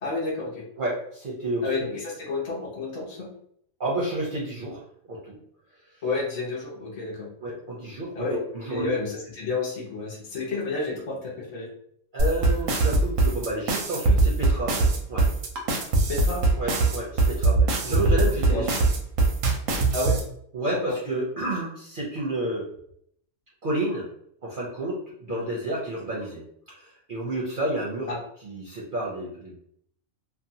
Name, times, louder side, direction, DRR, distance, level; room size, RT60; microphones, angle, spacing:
voice 1, 0.0-0.6 1.6-3.3 6.0-7.3 8.1-8.4 8.7-11.7 16.1-16.4 17.9-18.0 18.5-18.6 19.9-20.2 20.9-21.0 25.3-25.6 28.1-28.2, left 3 dB, 40° left, -3 dB, 0.6 m, -30 dB
voice 2, 0.8-1.7 3.8-5.4 7.4-8.9 12.1-15.3 16.6-18.8 20.5-22.7 23.6-24.1 24.4-26.4 26.7-28.1 28.4-29.7, right 1 dB, 55° right, -5 dB, 0.6 m, -30 dB
sound 1, 12.2-20.2, right 2 dB, 90° right, 1.0 m, -21 dB
2.7 x 2.1 x 2.7 m, 0.68 s
omnidirectional pair, 1.3 m